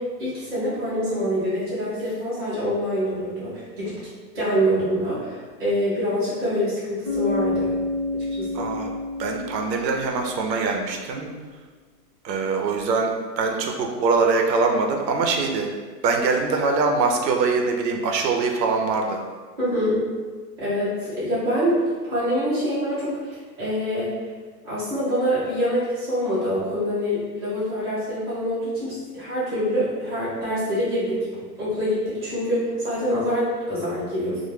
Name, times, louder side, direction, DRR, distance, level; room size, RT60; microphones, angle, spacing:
voice 1, 0.0-3.9 4.3-7.7 8.1-8.7 19.6-20.0 20.6-21.8 22.0-24.1 24.6-31.3 31.6-34.4, equal, 15° right, -15 dB, 0.5 m, -25 dB
Bass guitar, 7.0-10.9, left 2 dB, 45° left, 0.8 m, -29 dB
voice 2, 8.5-8.9 9.2-11.3 12.2-15.7 16.0-19.2, right 4 dB, 85° right, 2 dB, 0.6 m, -23 dB
2.1 x 2.1 x 3.1 m, 1.4 s
hypercardioid pair, 175°, 49 cm